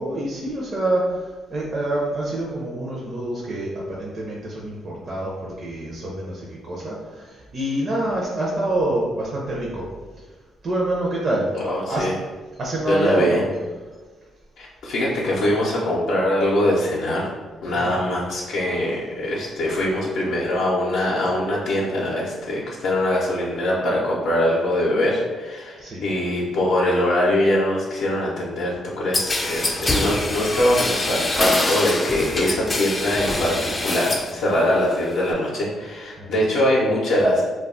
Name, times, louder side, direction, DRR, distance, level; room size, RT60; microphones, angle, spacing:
voice 1, 0.0-9.8 10.6-11.5 11.9-12.1 12.6-13.4 17.7-18.0 25.8-26.0 36.2-36.4, right 1 dB, 45° right, -4 dB, 0.5 m, -26 dB
voice 2, 11.5-12.1 12.9-13.4 14.6-17.2 17.6-37.4, left 1 dB, 75° left, -5 dB, 0.5 m, -22 dB
sound 1, 29.1-34.3 34.7-35.3, left 2 dB, 25° left, 0.3 m, -24 dB
2.2 x 2.0 x 3.6 m, 1.4 s
cardioid pair, 100°, 0 cm